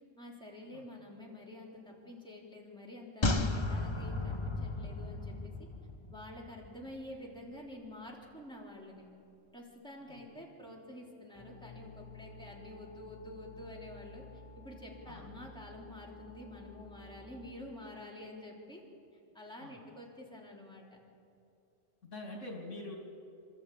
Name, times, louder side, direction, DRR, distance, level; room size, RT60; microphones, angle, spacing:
voice 1, 0.2-5.5 6.1-9.1 9.5-14.2 14.6-18.8 19.3-20.9, left 1 dB, 5° left, -3 dB, 3.5 m, -48 dB
sound 1, 3.2-6.7 7.0-7.1, left 2 dB, 25° left, 0.9 m, -34 dB
sound 2, 11.3-17.5, left 2 dB, 45° left, 4.9 m, -53 dB
voice 2, 22.0-23.0, left 2 dB, 85° left, 0 dB, 3.4 m, -44 dB
28.0 x 13.0 x 8.5 m, 2.6 s
omnidirectional pair, 1.3 m